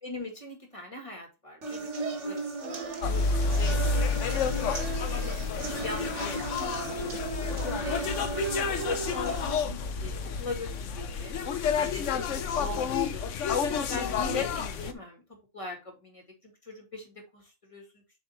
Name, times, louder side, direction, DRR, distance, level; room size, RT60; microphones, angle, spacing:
voice 1, 0.0-1.9 2.2-4.5 5.1-7.2 7.8-11.3 11.8-15.2 15.5-18.0, left 2 dB, 25° left, 1 dB, 2.2 m, -42 dB
sound 1, 1.6-9.6, right 4 dB, 65° right, 1.6 m, -36 dB
sound 2, 3.0-14.9, left 5 dB, 70° left, 1.1 m, -30 dB
7.1 x 3.6 x 4.3 m, 0.27 s
omnidirectional pair, 1.4 m